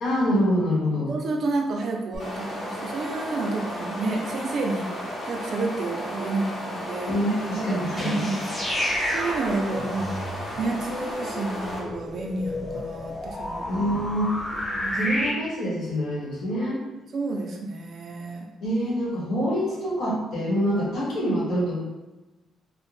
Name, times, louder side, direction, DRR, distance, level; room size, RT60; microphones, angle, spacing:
voice 1, 0.0-1.1 7.0-8.2 13.7-14.3 14.9-16.8 18.6-21.8, equal, 75° left, -5 dB, 1.0 m, -25 dB
voice 2, 1.0-7.1 7.7-8.4 8.6-13.6 14.7-15.1 17.1-18.5, right 3 dB, 60° right, 1 dB, 0.5 m, -30 dB
sound 1, 2.1-11.8, equal, 45° left, 0.8 m, -34 dB
sound 2, 7.8-15.3, left 1 dB, 15° left, 0.9 m, -31 dB
2.5 x 2.0 x 3.2 m, 1.1 s
cardioid pair, 90°, 0 cm